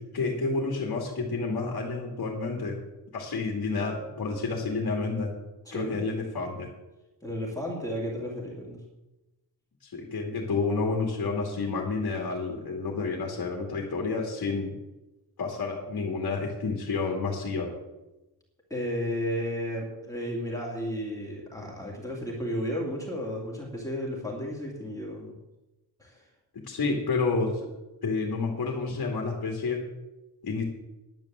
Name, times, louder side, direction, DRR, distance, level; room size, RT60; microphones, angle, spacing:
voice 1, 0.0-2.8 3.1-5.3 5.7-6.7 9.8-14.7 15.4-17.7 26.7-27.7 28.0-29.8 30.4-30.6, left 4 dB, 60° left, 1 dB, 2.4 m, -30 dB
voice 2, 5.7-6.0 7.2-8.8 18.7-25.3 26.0-26.2, equal, 10° left, -3 dB, 2.5 m, -33 dB
10.5 x 9.1 x 7.4 m, 1.0 s
wide cardioid pair, 170°, 40 cm